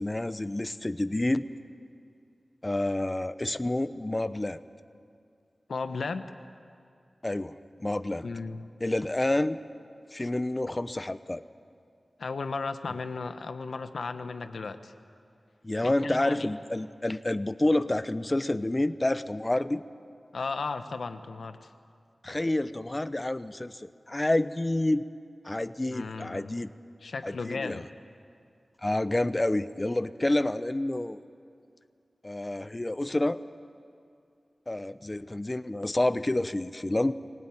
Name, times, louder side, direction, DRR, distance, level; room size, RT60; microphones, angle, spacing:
voice 1, 0.0-1.4 2.6-4.6 7.2-8.3 8.8-9.6 10.1-11.4 15.6-19.8 22.2-25.0 25.4-26.7 27.2-27.8 28.8-31.2 32.2-33.4 34.7-37.1, left 1 dB, 30° left, 12 dB, 0.8 m, -28 dB
voice 2, 5.7-6.3 8.2-8.7 12.2-14.9 15.8-16.5 20.3-21.7 25.9-26.6 27.0-27.9, left 4 dB, 85° left, 9 dB, 1.0 m, -35 dB
23.0 x 18.5 x 9.2 m, 2.3 s
cardioid pair, 45°, 0 cm